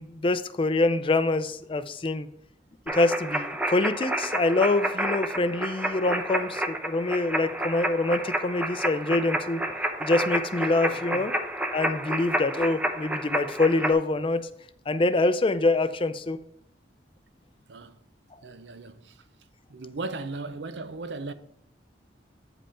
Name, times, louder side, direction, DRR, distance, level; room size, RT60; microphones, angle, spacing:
voice 1, 0.0-2.3 2.9-9.6 10.0-11.5 11.7-14.4 14.9-16.4, left 2 dB, 30° left, 0.4 m, -25 dB
sound 1, 2.9-13.9, right 1 dB, 10° right, 0.7 m, -30 dB
voice 2, 10.9-11.3 17.7-18.0 18.4-19.2 19.7-21.3, right 3 dB, 75° right, 0.6 m, -37 dB
8.7 x 5.3 x 4.3 m
head